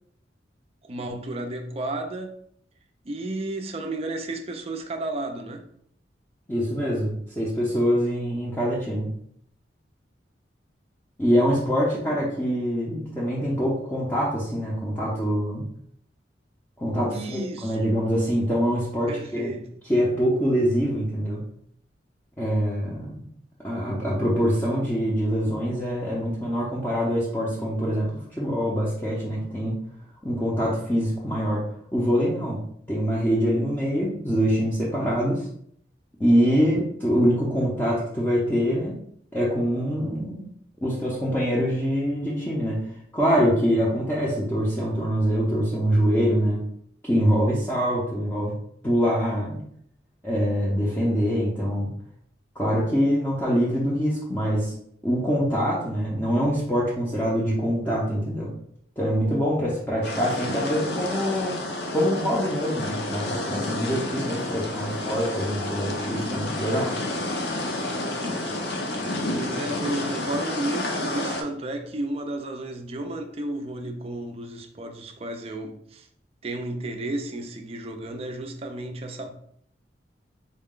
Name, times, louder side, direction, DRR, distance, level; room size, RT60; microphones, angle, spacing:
voice 1, 0.8-2.3 3.0-5.7 17.1-17.9 19.1-19.8 69.4-76.1 76.4-79.3, right 2 dB, 30° right, 0.4 m, -32 dB
voice 2, 6.5-9.1 11.2-15.7 16.8-19.5 19.9-21.4 22.4-23.3 23.6-29.8 30.2-31.6 31.9-32.6 32.9-35.5 36.2-39.0 39.3-40.4 40.8-42.9 43.1-46.6 47.0-48.6 48.8-49.6 50.2-51.9 52.6-54.7 55.0-58.5 59.0-61.6 61.9-66.9, equal, 10° left, 0.6 m, -24 dB
sound 1, 60.0-71.4, left 1 dB, 65° left, 0.7 m, -30 dB
3.9 x 2.2 x 3.6 m
head